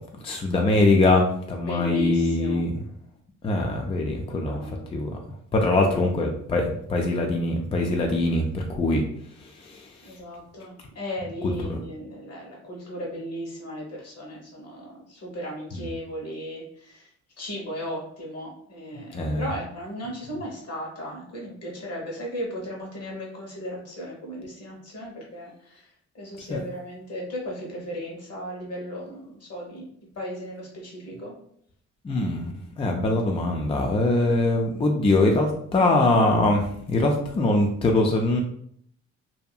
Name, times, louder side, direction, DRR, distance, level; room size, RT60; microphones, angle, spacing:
voice 1, 0.2-2.7 3.4-4.6 4.9-5.1 5.5-9.0 9.6-9.9 11.4-11.8 15.7-15.9 19.1-19.5 26.5-26.6 32.0-38.4, left 2 dB, 20° left, 1 dB, 0.3 m, -23 dB
voice 2, 1.6-2.6 4.3-4.8 5.8-6.2 10.0-17.1 17.4-25.9 26.1-29.8 30.1-31.3, equal, 55° left, -2 dB, 1.2 m, -36 dB
2.7 x 2.4 x 2.3 m, 0.65 s
cardioid pair, 90°, 30 cm